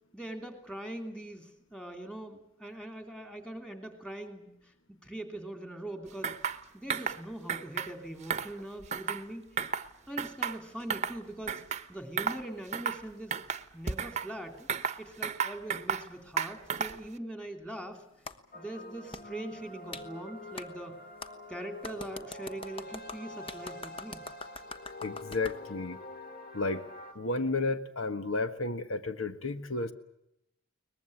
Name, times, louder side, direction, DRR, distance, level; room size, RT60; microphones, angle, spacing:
voice 1, 0.1-6.4 6.7-9.5 10.1-11.6 11.9-13.4 13.7-14.7 15.0-18.0 18.5-20.9 21.5-24.2, right 1 dB, 5° left, 6 dB, 3.1 m, -42 dB
sound 1, 6.2-6.6 6.9-7.2 7.5-7.9 8.2-9.3 9.6-9.9 10.2-11.2 11.5-11.8 12.2-12.4 12.7-13.0 13.3-14.3 14.7-16.1 16.4-17.1, right 6 dB, 35° right, 1.0 m, -33 dB
Clapping, 18.2-18.4 19.1-19.2 19.9-20.0 20.6-20.7 21.2-21.3 21.8-25.6, left 3 dB, 25° left, 1.2 m, -43 dB
sound 2, 18.5-27.1, left 2 dB, 45° left, 4.0 m, -46 dB
voice 2, 25.0-26.0 26.5-26.8 27.1-29.9, left 3 dB, 80° left, 10 dB, 1.6 m, -32 dB
23.0 x 20.5 x 8.5 m, 0.81 s
head